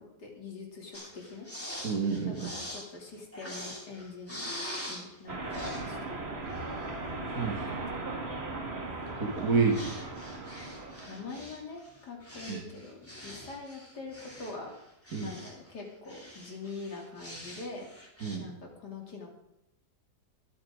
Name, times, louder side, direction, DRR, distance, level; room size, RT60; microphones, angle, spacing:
voice 1, 0.0-1.5 2.3-4.5 4.9-6.1 11.1-14.7 15.2-17.9 18.4-19.3, left 3 dB, 75° left, 0 dB, 3.5 m, -44 dB
sound 1, 0.9-5.2 5.5-5.8 6.4-7.3 9.1-9.2 9.7-15.7 16.1-18.4, equal, 10° left, 2.9 m, -44 dB
voice 2, 1.8-2.5 7.3-7.6 9.2-9.8 12.5-12.6 15.1-15.3 18.2-18.4, right 4 dB, 60° right, 1 dB, 2.2 m, -28 dB
sound 2, 5.3-11.3, right 2 dB, 40° right, 2.0 m, -38 dB
22.5 x 8.9 x 3.8 m, 0.88 s
omnidirectional pair, 1.8 m